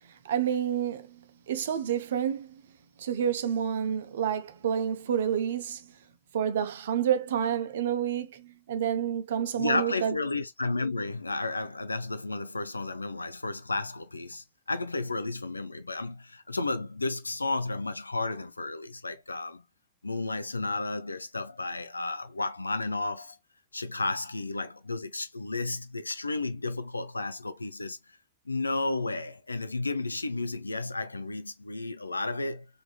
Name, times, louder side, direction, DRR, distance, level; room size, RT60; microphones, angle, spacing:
voice 1, 0.2-2.6 3.0-5.9 6.3-10.2, right 9 dB, 60° right, 0.5 m, -29 dB
voice 2, 9.6-19.6 20.0-23.4 23.7-28.0 28.5-32.7, left 3 dB, 80° left, 0.4 m, -32 dB
3.4 x 2.6 x 2.2 m
figure-of-eight pair, 90°, 0 cm